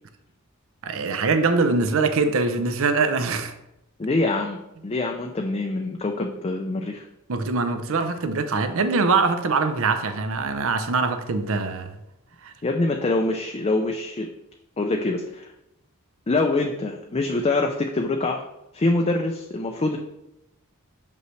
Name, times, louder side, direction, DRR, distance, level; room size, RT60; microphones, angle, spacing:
voice 1, 0.8-3.5 7.3-12.0 12.4-12.5, right 4 dB, 65° right, 0.6 m, -23 dB
voice 2, 4.0-7.1 12.6-14.3 14.8-15.5 16.3-18.4 18.7-20.0, left 2 dB, 25° left, 0.4 m, -25 dB
6.1 x 5.4 x 3.2 m
head